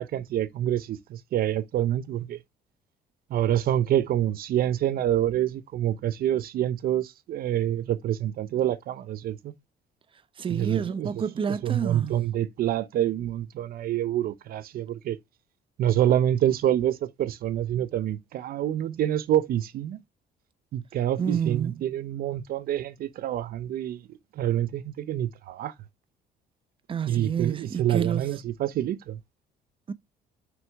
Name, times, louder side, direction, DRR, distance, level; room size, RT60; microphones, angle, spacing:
voice 1, 0.0-2.4 3.3-9.5 10.5-11.1 11.6-15.2 15.8-20.0 20.7-24.0 24.4-25.7 27.1-29.2, right 11 dB, 60° right, 0.7 m, -27 dB
voice 2, 10.4-12.2 21.2-21.8 26.9-28.3 29.9-30.0, right 7 dB, 30° right, 0.8 m, -29 dB
6.2 x 6.0 x 3.5 m
cardioid pair, 110°, 17 cm